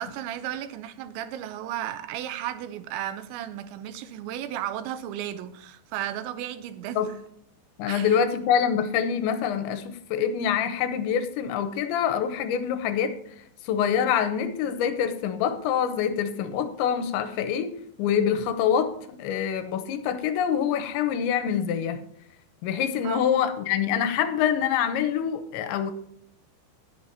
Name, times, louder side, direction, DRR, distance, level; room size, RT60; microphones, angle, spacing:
voice 1, 0.0-7.1 7.9-8.2 23.0-23.3, right 11 dB, 90° right, 3.0 m, -34 dB
voice 2, 7.8-13.2 13.6-17.7 18.0-22.0 22.6-25.9, left 8 dB, 85° left, 3.2 m, -25 dB
18.5 x 6.9 x 2.8 m
omnidirectional pair, 5.3 m